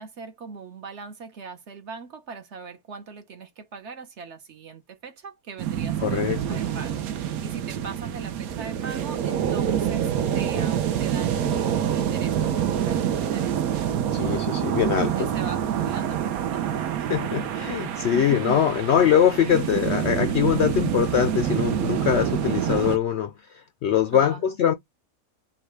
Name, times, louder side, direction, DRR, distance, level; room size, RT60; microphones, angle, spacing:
voice 1, 0.0-13.6 15.2-16.9 18.1-18.6 19.4-19.7 24.1-24.4, right 5 dB, 55° right, 1.2 m, -40 dB
sound 1, 5.6-23.0, right 9 dB, 75° right, 1.2 m, -26 dB
voice 2, 6.0-6.6 14.1-15.3 17.1-24.7, left 9 dB, 65° left, 0.6 m, -23 dB
5.6 x 2.4 x 3.2 m
omnidirectional pair, 1.5 m